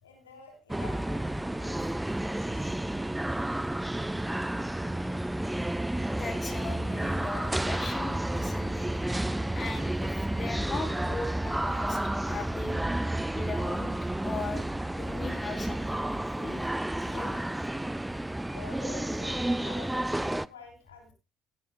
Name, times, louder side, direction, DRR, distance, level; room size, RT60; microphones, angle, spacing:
voice 1, 0.0-2.8 18.4-21.1, left 5 dB, 90° left, 2 dB, 3.3 m, -50 dB
sound 1, 0.7-20.5, right 1 dB, 10° right, 0.5 m, -31 dB
voice 2, 6.2-8.9 9.5-12.9 13.3-13.9 14.2-16.7 17.0-17.4, left 3 dB, 35° left, 4 dB, 4.0 m, -39 dB
16.5 x 11.5 x 2.3 m, 0.27 s
hypercardioid pair, 55°, 0 cm